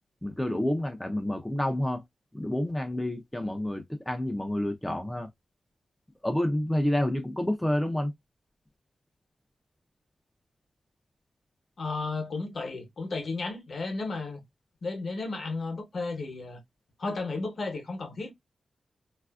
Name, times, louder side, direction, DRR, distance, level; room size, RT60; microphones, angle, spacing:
voice 1, 0.2-2.0 2.3-5.3 6.2-8.1, left 1 dB, 5° left, 0.4 m, -29 dB
voice 2, 11.8-14.4 14.8-16.6 17.0-18.3, left 3 dB, 50° left, 0.8 m, -33 dB
3.3 x 2.4 x 2.2 m
wide cardioid pair, 165°, 0 cm